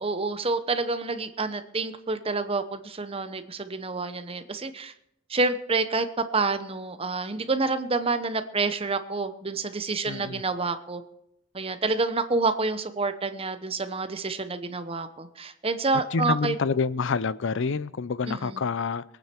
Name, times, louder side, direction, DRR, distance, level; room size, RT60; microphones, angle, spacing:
voice 1, 0.0-4.9 5.3-11.0 11.5-16.6 18.3-18.6, right 3 dB, 25° right, 10 dB, 0.9 m, -28 dB
voice 2, 10.1-10.4 16.1-19.0, left 5 dB, 60° left, 17 dB, 0.5 m, -27 dB
22.5 x 9.2 x 4.5 m, 0.77 s
head